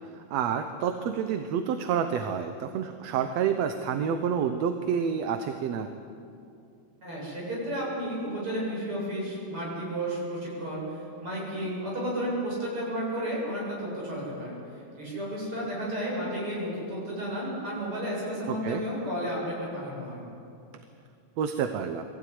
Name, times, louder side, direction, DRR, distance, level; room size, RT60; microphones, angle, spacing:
voice 1, 0.3-5.9 18.5-18.8 21.4-22.0, right 7 dB, 70° right, 7 dB, 2.0 m, -28 dB
voice 2, 7.0-20.2, equal, 45° right, -5 dB, 8.8 m, -32 dB
23.0 x 15.5 x 9.5 m, 2.5 s
omnidirectional pair, 3.3 m